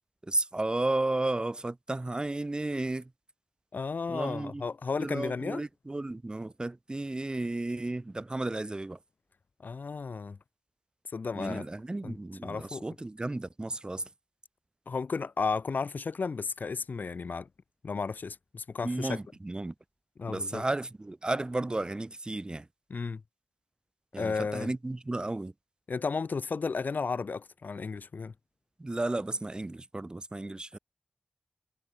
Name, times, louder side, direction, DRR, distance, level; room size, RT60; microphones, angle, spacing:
voice 1, 0.2-3.1 4.1-4.7 5.0-9.0 11.3-14.1 18.8-19.7 20.3-22.7 24.1-25.5 28.8-30.8, right 2 dB, 25° right, 5.4 m, -33 dB
voice 2, 3.7-5.6 9.6-10.4 11.1-11.6 12.0-12.1 12.4-12.8 14.9-17.5 17.8-19.2 20.2-20.6 22.9-23.2 24.2-24.7 25.9-28.3, left 4 dB, 70° left, 3.2 m, -33 dB
wide cardioid pair, 95°, 3 cm